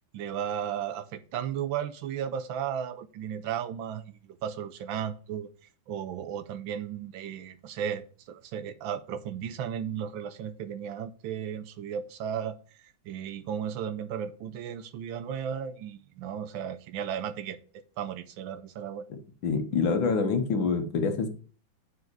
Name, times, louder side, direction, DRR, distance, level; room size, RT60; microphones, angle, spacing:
voice 1, 0.1-5.5 5.9-19.1, right 8 dB, 80° right, 1.4 m, -35 dB
voice 2, 19.4-21.3, left 5 dB, 75° left, 1.8 m, -26 dB
6.6 x 4.9 x 4.6 m
omnidirectional pair, 2.2 m